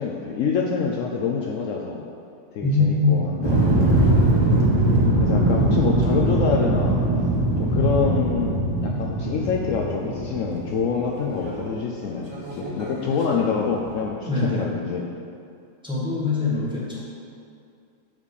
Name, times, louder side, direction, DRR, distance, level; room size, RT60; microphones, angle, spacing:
voice 1, 0.0-2.1 2.5-3.6 5.2-7.0 7.6-8.6 8.8-15.1, left 5 dB, 85° left, -1 dB, 0.7 m, -26 dB
voice 2, 2.6-3.2 7.7-8.0 14.2-14.7 15.8-17.0, left 3 dB, 5° right, -8 dB, 1.4 m, -23 dB
sound 1, 3.4-11.7 12.1-13.4 13.8-14.0, right 1 dB, 20° right, 0.8 m, -21 dB
7.4 x 5.3 x 4.8 m, 2.4 s
omnidirectional pair, 2.0 m